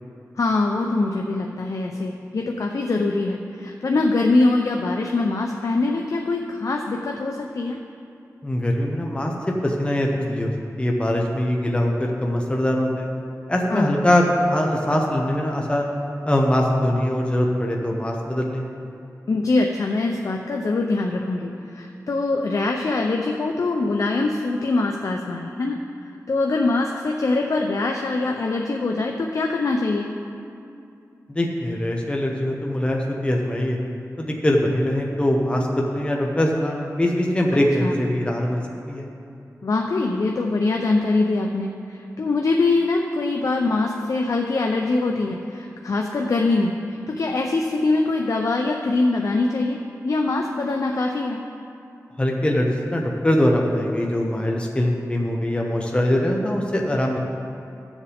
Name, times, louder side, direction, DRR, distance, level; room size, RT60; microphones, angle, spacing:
voice 1, 0.4-7.8 13.7-14.1 19.3-25.8 26.3-30.1 37.8-37.9 39.6-49.8 50.0-51.4, left 3 dB, 65° left, 1 dB, 0.6 m, -23 dB
voice 2, 8.4-10.5 10.8-13.1 13.5-14.2 14.5-15.9 16.2-18.6 31.3-33.8 34.2-39.1 52.2-57.2, left 1 dB, 20° left, -1 dB, 1.0 m, -22 dB
15.5 x 7.3 x 3.5 m, 2.6 s
wide cardioid pair, 75°, 6 cm